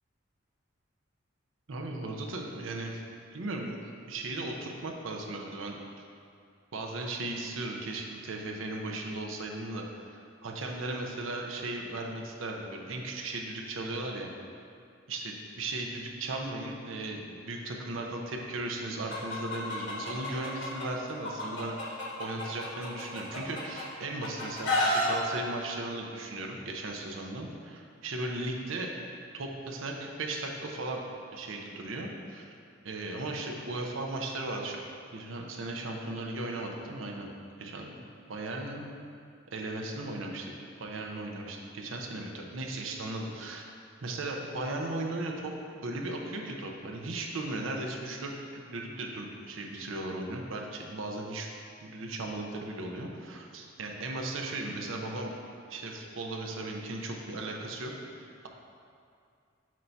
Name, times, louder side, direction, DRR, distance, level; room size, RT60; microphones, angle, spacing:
voice 1, 1.7-3.0 3.3-3.8 4.1-6.0 6.7-14.3 15.1-28.9 29.3-31.0 31.3-32.5 32.8-34.8 35.1-37.3 37.6-37.8 38.3-38.9 39.5-40.5 40.8-43.7 44.0-45.5 45.8-51.5 51.8-55.3 55.7-57.9 58.2-58.5, right 2 dB, 80° right, 1 dB, 0.7 m, -37 dB
Chicken rooster, 19.1-20.8 21.2-23.8 24.2-25.1, left 1 dB, 60° left, 1.2 m, -31 dB
7.5 x 2.7 x 5.7 m, 2.3 s
head